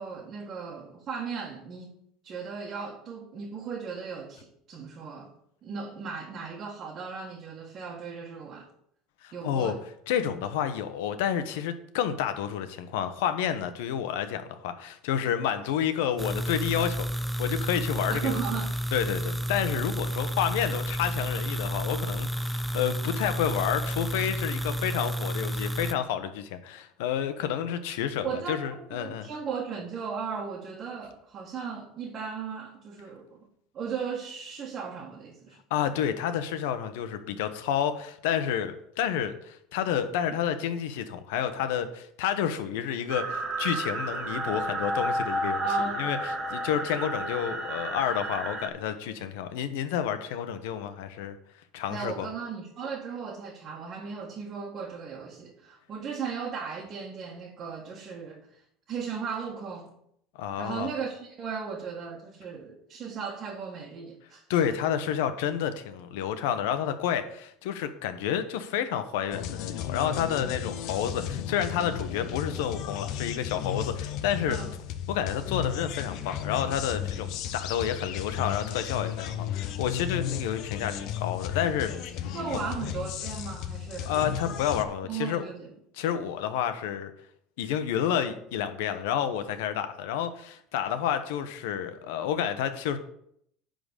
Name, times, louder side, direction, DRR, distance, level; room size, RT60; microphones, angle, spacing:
voice 1, 0.0-1.9 2.2-5.3 5.6-8.7 9.3-9.8 18.1-18.7 28.2-33.5 33.7-35.6 45.6-46.1 51.9-58.4 58.9-59.9 60.6-64.4 74.5-74.8 82.3-84.1 85.1-85.7, right 6 dB, 35° right, -2 dB, 1.4 m, -36 dB
voice 2, 9.2-9.7 10.1-17.1 17.4-18.4 18.9-29.3 35.7-45.6 46.0-51.4 51.7-52.3 60.3-60.9 64.5-74.6 75.1-81.9 82.5-82.7 84.1-85.4 85.9-87.1 87.6-93.0, left 9 dB, 90° left, 10 dB, 1.0 m, -30 dB
sound 1, 16.2-25.9, equal, ahead, 0.4 m, -31 dB
sound 2, 43.1-48.7, right 1 dB, 15° right, 1.2 m, -31 dB
sound 3, 69.3-84.8, left 9 dB, 55° left, 0.8 m, -34 dB
10.5 x 3.9 x 6.6 m, 0.71 s
cardioid pair, 145°, 0 cm